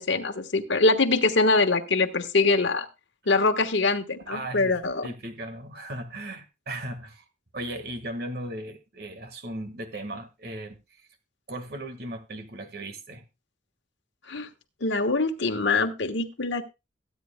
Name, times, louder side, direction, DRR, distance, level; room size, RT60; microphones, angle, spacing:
voice 1, 0.0-2.9 3.3-5.1 14.3-14.5 14.8-16.6, left 3 dB, 85° left, 1.3 m, -23 dB
voice 2, 4.3-7.2 7.5-10.8 11.5-13.2, right 1 dB, 55° right, 1.6 m, -37 dB
22.0 x 9.2 x 2.2 m
head